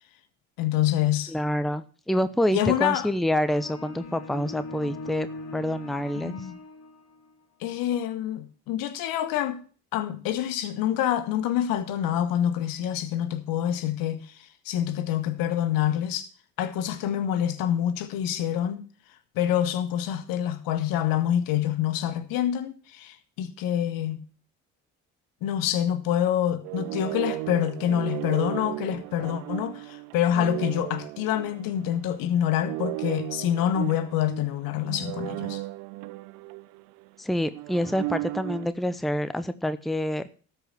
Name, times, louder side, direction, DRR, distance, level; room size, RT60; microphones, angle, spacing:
voice 1, 0.6-1.3 2.5-3.1 6.1-6.5 7.6-9.6 9.9-14.2 14.6-16.3 16.6-18.9 19.3-24.2 25.4-35.6, left 11 dB, 80° left, 1.3 m, -26 dB
voice 2, 1.3-6.3 37.2-40.3, equal, ahead, 0.8 m, -27 dB
sound 1, 3.3-7.3, left 3 dB, 50° left, 2.4 m, -40 dB
sound 2, 26.6-32.1 32.5-37.1 37.5-38.7, right 22 dB, 90° right, 0.5 m, -35 dB
13.0 x 4.9 x 7.9 m
hypercardioid pair, 55°, 34 cm